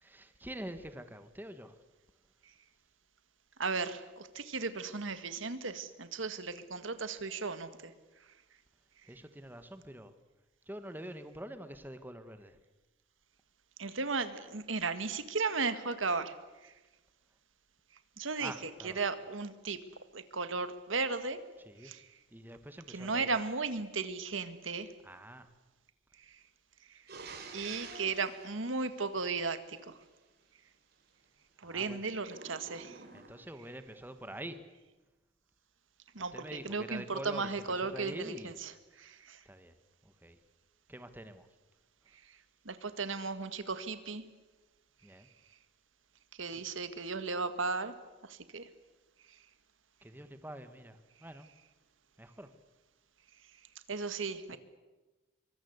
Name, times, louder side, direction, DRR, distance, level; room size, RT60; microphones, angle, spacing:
voice 1, 0.0-1.8 9.1-10.1 10.7-12.6 18.4-19.0 21.6-21.9 22.3-23.7 25.0-25.5 31.6-32.1 33.1-34.6 36.2-38.6 39.5-39.7 40.2-40.4 40.9-41.5 45.0-45.3 46.5-46.6 50.0-51.5 52.2-52.5, right 1 dB, 10° right, 10 dB, 1.4 m, -46 dB
voice 2, 3.6-7.9 13.8-16.3 18.2-18.5 18.8-19.8 20.1-21.4 21.8-22.1 22.9-24.9 27.5-30.0 31.6-33.0 36.2-38.7 39.0-39.4 42.7-44.2 46.4-47.9 48.2-48.7 53.9-54.6, right 4 dB, 85° right, 11 dB, 1.8 m, -35 dB
sound 1, 27.1-29.8 32.2-33.6, right 4 dB, 55° right, 3.9 m, -49 dB
24.5 x 24.0 x 8.1 m, 1.2 s
head